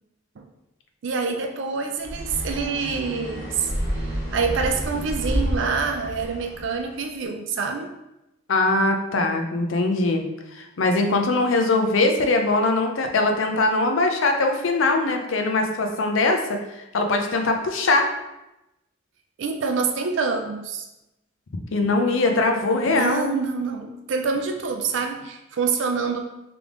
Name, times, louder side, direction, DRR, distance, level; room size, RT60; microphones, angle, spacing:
voice 1, 1.0-7.9 19.4-20.9 22.7-26.2, right 5 dB, 60° right, 4 dB, 0.4 m, -26 dB
sound 1, 2.0-6.9, equal, 20° left, 1.4 m, -29 dB
voice 2, 8.5-18.1 21.7-23.3, left 2 dB, 70° left, 4 dB, 0.6 m, -22 dB
3.4 x 3.3 x 3.7 m, 0.93 s
head